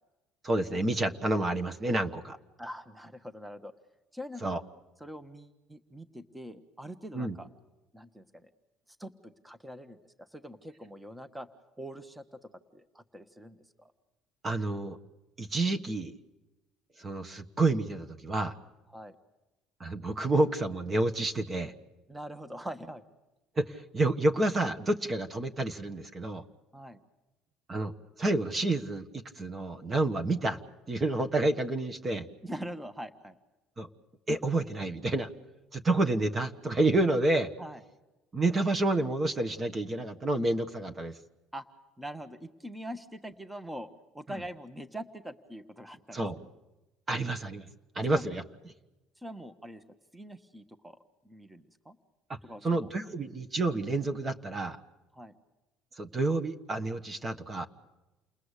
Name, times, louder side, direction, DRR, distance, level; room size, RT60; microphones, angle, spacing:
voice 1, 0.4-2.4 4.4-4.6 7.1-7.3 14.4-15.0 15.4-16.1 17.0-18.5 19.8-21.7 23.6-26.4 27.7-27.9 28.2-30.6 30.9-32.3 33.8-33.9 34.3-35.3 35.7-37.5 38.3-41.2 44.3-44.4 46.1-46.4 47.1-47.7 47.9-48.4 52.3-54.8 56.0-57.7, right 2 dB, 30° right, 7 dB, 1.4 m, -29 dB
voice 2, 2.6-3.7 4.1-4.5 5.0-7.5 7.9-8.5 9.0-11.5 11.8-13.9 18.9-19.2 22.1-23.0 26.7-27.0 32.4-33.4 37.6-37.8 41.5-41.6 42.0-43.9 44.1-46.5 47.1-47.2 48.1-48.2 49.2-49.8 50.1-51.0 51.2-52.0 52.4-52.9 55.2-55.3, equal, 5° right, 10 dB, 1.3 m, -43 dB
29.5 x 19.5 x 8.3 m, 1.0 s
cardioid pair, 110°, 0 cm